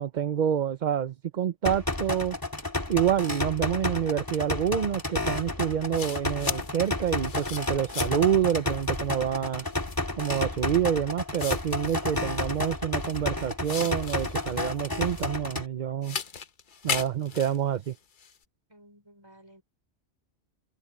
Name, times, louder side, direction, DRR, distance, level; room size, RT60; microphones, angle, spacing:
voice 1, 0.0-2.4 2.9-9.6 10.2-16.2 16.8-17.9, right 9 dB, 50° right, 0.7 m, -27 dB
sound 1, 1.6-15.6, left 2 dB, 20° left, 2.3 m, -31 dB
sound 2, 5.3-5.4 5.9-8.3 8.7-9.0 9.7-10.1 10.8-10.9 11.4-13.2 13.6-15.3 16.0-18.4, left 6 dB, 50° left, 1.0 m, -37 dB
voice 2, 18.7-19.6, equal, 20° right, 5.5 m, -55 dB
omnidirectional pair, 1.2 m